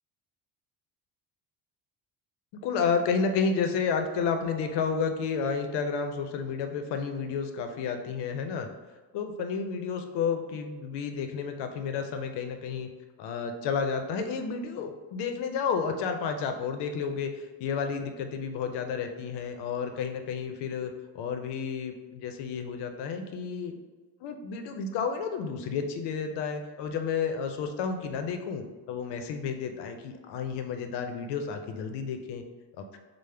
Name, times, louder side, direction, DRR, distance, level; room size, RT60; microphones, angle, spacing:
voice 1, 2.6-8.7 9.1-12.9 13.2-23.7 24.2-32.4 32.8-33.0, left 5 dB, 75° left, 6 dB, 0.6 m, -31 dB
5.0 x 2.0 x 3.3 m, 1.3 s
cardioid pair, 145°, 41 cm